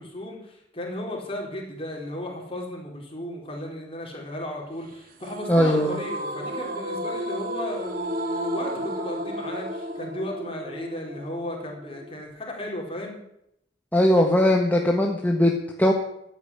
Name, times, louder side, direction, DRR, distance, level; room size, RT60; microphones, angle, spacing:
voice 1, 0.0-13.2, left 1 dB, 30° left, 0 dB, 4.4 m, -35 dB
sound 1, 5.2-12.3, equal, 50° right, 2.1 m, -33 dB
voice 2, 5.5-6.0 13.9-15.9, left 1 dB, 10° left, 1 dB, 1.4 m, -20 dB
14.5 x 9.1 x 9.9 m, 0.79 s
head